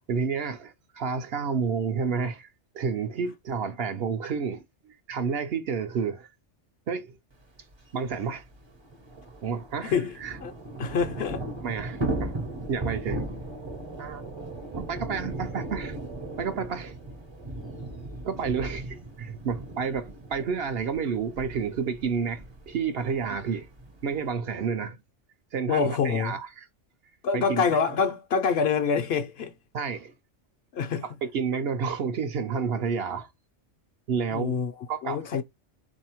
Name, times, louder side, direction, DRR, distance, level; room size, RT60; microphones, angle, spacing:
voice 1, 0.1-2.5 2.7-6.3 6.9-7.2 7.9-8.4 9.4-10.4 11.6-12.4 12.7-13.2 14.0-14.3 14.7-16.0 16.4-17.0 18.2-23.7 24.0-25.0 25.5-26.6 27.3-27.6 29.7-30.1 31.2-33.3 34.1-34.6 34.9-35.2, right 6 dB, 60° right, 0.8 m, -30 dB
Thunder / Rain, 7.7-7.8 8.0-8.1 8.4-24.3, right 2 dB, 30° right, 0.6 m, -37 dB
voice 2, 9.8-10.5 10.8-11.4 25.7-26.3 27.2-29.5 30.7-31.0 34.3-34.7 35.0-35.4, left 6 dB, 65° left, 0.7 m, -26 dB
3.9 x 2.7 x 2.8 m
omnidirectional pair, 1.2 m